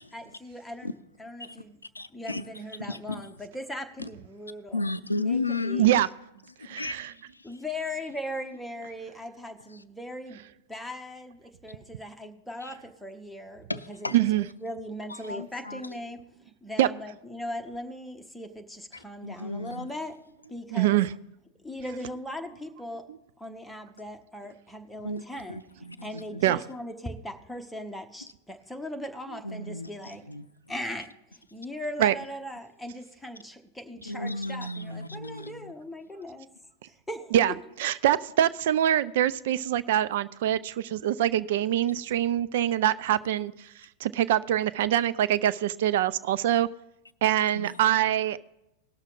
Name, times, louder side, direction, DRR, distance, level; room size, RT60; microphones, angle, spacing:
voice 1, 0.1-1.8 2.1-4.8 5.3-5.9 7.4-10.4 10.7-16.2 16.6-20.1 20.5-21.0 21.6-23.0 23.4-25.6 26.0-30.2 30.7-36.5 36.9-37.3, left 1 dB, 5° left, 1.0 m, -39 dB
voice 2, 1.9-2.5 2.9-3.3 4.0-4.1 4.7-5.9 6.7-7.6 12.6-12.7 13.7-14.2 15.1-15.8 18.9-19.9 25.0-26.4 29.4-29.9 30.3-30.5 34.1-35.7 47.5-47.8, left 2 dB, 80° left, 0.4 m, -34 dB
voice 3, 6.6-7.1 14.1-14.4 16.8-16.9 20.7-21.1 26.4-26.6 32.0-32.1 37.3-37.5 37.8-43.5 44.0-46.7 47.2-48.4, right 12 dB, 55° right, 0.3 m, -24 dB
18.5 x 6.4 x 3.9 m
figure-of-eight pair, 90°, 0 cm